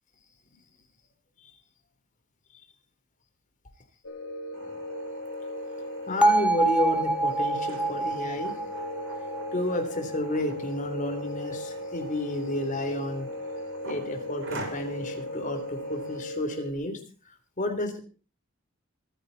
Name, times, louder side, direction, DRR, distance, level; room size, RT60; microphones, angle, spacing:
sound 1, 4.0-16.7, left 1 dB, 80° left, 3.0 m, -37 dB
sound 2, 4.5-16.2, right 1 dB, 65° right, 5.8 m, -46 dB
voice 1, 6.1-8.5 9.5-13.3 13.8-17.0 17.6-18.0, left 1 dB, 40° left, 6 dB, 3.4 m, -31 dB
Bell, 6.2-10.3, right 2 dB, 5° right, 0.9 m, -26 dB
24.5 x 10.0 x 4.1 m, 0.36 s
head